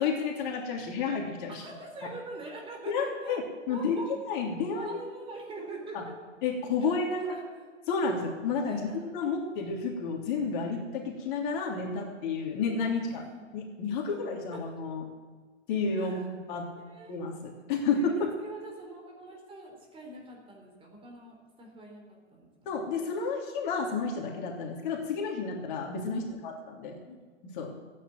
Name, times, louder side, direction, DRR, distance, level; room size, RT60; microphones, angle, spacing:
voice 1, 0.0-1.7 2.8-5.0 5.9-6.0 6.4-7.4 7.9-13.2 13.5-15.0 15.7-16.7 17.1-18.3 22.6-27.0 27.4-27.7, left 4 dB, 40° left, 0 dB, 3.2 m, -31 dB
voice 2, 1.5-3.4 3.7-4.1 4.7-6.1 6.8-7.6 8.7-9.1 13.1-13.5 14.1-14.2 14.5-14.6 15.9-16.3 16.8-17.1 17.9-22.7 26.1-26.4 27.1-27.2, right 2 dB, 15° right, 1 dB, 3.7 m, -44 dB
15.5 x 10.0 x 7.8 m, 1.5 s
hypercardioid pair, 135°, 36 cm